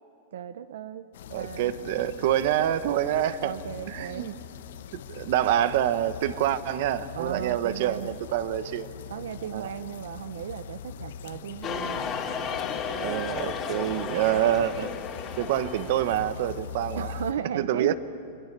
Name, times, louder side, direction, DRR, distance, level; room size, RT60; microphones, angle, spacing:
voice 1, 0.3-1.1 1.4-1.8 3.4-4.3 7.1-8.2 9.1-12.0 14.1-14.4 17.0-17.9, right 9 dB, 85° right, 13 dB, 0.8 m, -36 dB
sound 1, 1.1-17.3, left 8 dB, 75° left, 1.1 m, -42 dB
voice 2, 1.3-3.5 3.9-4.4 4.9-8.9 9.5-9.7 13.0-14.9 15.4-17.1 17.5-17.9, right 11 dB, 55° right, 13 dB, 1.0 m, -26 dB
sound 2, 11.6-16.5, left 6 dB, 25° left, 2.6 m, -34 dB
30.0 x 24.5 x 6.8 m, 2.6 s
supercardioid pair, 160°, 0 cm